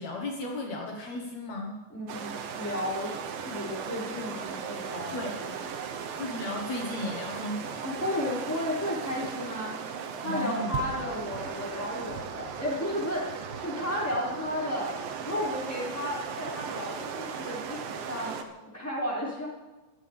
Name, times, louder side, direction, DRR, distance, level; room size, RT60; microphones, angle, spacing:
voice 1, 0.0-1.8 5.1-5.3 6.2-7.8 10.2-10.8, left 1 dB, 75° left, 0 dB, 1.6 m, -35 dB
voice 2, 1.9-3.1 3.4-5.5 7.8-9.8 10.2-14.9 15.2-18.4 18.7-19.5, left 1 dB, 5° left, -6 dB, 5.4 m, -33 dB
sound 1, 2.1-18.4, right 7 dB, 75° right, 2.1 m, -37 dB
25.5 x 15.5 x 3.5 m, 1.2 s
omnidirectional pair, 5.5 m